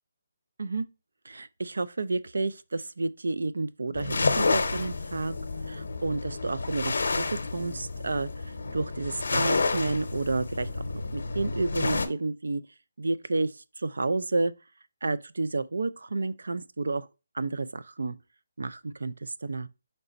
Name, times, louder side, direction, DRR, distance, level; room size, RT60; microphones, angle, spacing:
voice 1, 1.2-5.3 5.7-8.3 8.7-10.8 11.1-12.6 13.0-14.5 15.0-17.1 17.3-18.2 18.6-19.7, right 3 dB, 90° right, 0.4 m, -30 dB
sound 1, 3.9-12.1, left 3 dB, 80° left, 0.7 m, -30 dB
4.1 x 3.3 x 3.9 m
hypercardioid pair, 170°, 0 cm